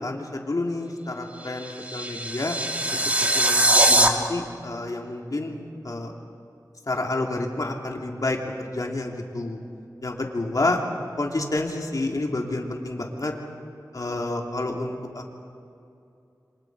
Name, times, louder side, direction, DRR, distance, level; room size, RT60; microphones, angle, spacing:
voice 1, 0.0-2.5 2.9-3.0 3.3-5.6 5.8-6.1 6.9-9.6 10.0-10.8 11.2-13.3 13.9-15.4, left 2 dB, 60° left, 1 dB, 2.9 m, -29 dB
sound 1, 1.4-4.1, right 1 dB, 20° right, 2.3 m, -21 dB
28.5 x 25.5 x 4.8 m, 2.6 s
wide cardioid pair, 75°, 7 cm